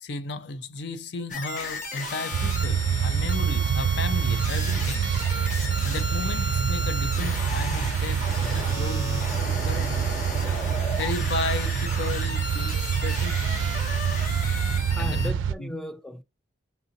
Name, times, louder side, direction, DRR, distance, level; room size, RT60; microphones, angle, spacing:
voice 1, 0.0-5.1 5.8-10.0 10.9-13.7 15.0-15.3 15.6-15.7, left 3 dB, 60° left, 0.5 m, -34 dB
sound 1, 1.3-15.3, left 2 dB, 40° left, 1.0 m, -34 dB
sound 2, 2.3-15.5, right 8 dB, 75° right, 0.3 m, -26 dB
voice 2, 14.9-16.2, left 1 dB, ahead, 0.3 m, -36 dB
5.9 x 2.7 x 2.6 m
head